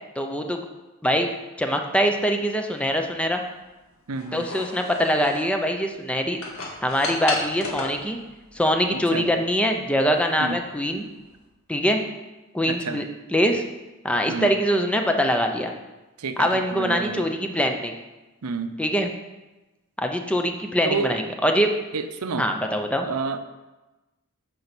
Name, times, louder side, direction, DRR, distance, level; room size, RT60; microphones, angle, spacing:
voice 1, 0.2-0.6 1.0-1.3 1.6-3.4 4.3-6.4 6.8-8.2 8.5-11.1 11.7-12.0 12.5-13.6 14.0-15.7 16.4-17.9 18.8-19.1 20.0-21.7 22.4-23.1, equal, 5° left, 4 dB, 0.6 m, -23 dB
sound 1, 2.8-11.5, left 3 dB, 70° left, 1.8 m, -36 dB
voice 2, 4.1-4.4 8.9-9.3 10.4-10.6 12.7-13.0 14.3-14.5 16.2-17.2 18.4-18.7 20.9-21.1 21.9-22.5 23.0-23.4, right 4 dB, 90° right, 9 dB, 0.7 m, -29 dB
8.4 x 5.4 x 6.0 m, 1.1 s
head